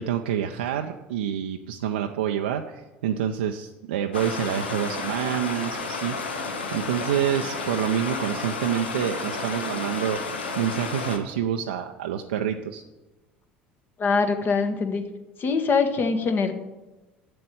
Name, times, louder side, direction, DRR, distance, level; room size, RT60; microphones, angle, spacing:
voice 1, 0.0-6.2 6.7-10.2 10.6-12.8, right 9 dB, 70° right, 3 dB, 0.6 m, -27 dB
Stream, 4.1-11.2, left 4 dB, 80° left, 1.2 m, -31 dB
voice 2, 14.0-15.0 15.4-16.5, left 4 dB, 40° left, 7 dB, 1.3 m, -23 dB
7.8 x 7.7 x 8.5 m, 1.1 s
figure-of-eight pair, 65°, 6 cm